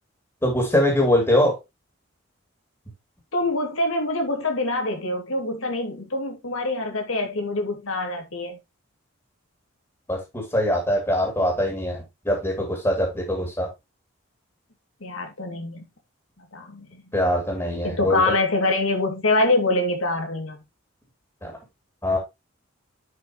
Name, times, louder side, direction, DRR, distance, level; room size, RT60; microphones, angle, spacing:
voice 1, 0.4-1.5 10.1-13.7 17.1-18.2 21.4-21.5 22.0-22.2, left 1 dB, 15° left, 2.9 m, -22 dB
voice 2, 3.3-8.6 15.0-15.8 16.4-17.0 17.8-20.6, left 2 dB, 90° left, 2.5 m, -25 dB
9.8 x 5.6 x 3.0 m
head